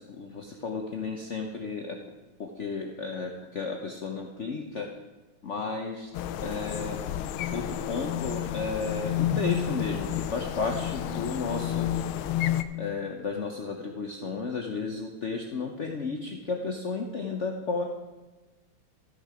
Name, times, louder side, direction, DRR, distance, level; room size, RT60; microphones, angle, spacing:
voice 1, 0.0-2.0 2.4-4.9 5.4-6.1 6.4-7.0 7.5-12.0 12.4-17.8, left 4 dB, 65° left, 2 dB, 0.7 m, -33 dB
sound 1, 6.1-12.6, left 10 dB, 90° left, 1.4 m, -30 dB
13.5 x 6.6 x 4.9 m, 1.2 s
omnidirectional pair, 2.3 m